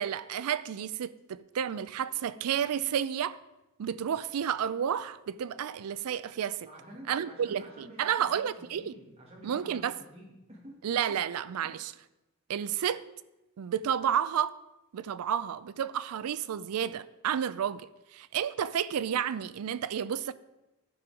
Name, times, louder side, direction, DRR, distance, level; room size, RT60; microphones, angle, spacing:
voice 1, 0.0-3.4 3.8-6.7 7.1-8.9 9.4-9.9 10.8-11.9 12.5-13.0 13.6-14.5 14.9-20.3, right 9 dB, 90° right, 0.4 m, -31 dB
voice 2, 6.7-8.5 8.8-10.8, right 1 dB, 30° right, 1.9 m, -49 dB
11.5 x 5.3 x 4.8 m
head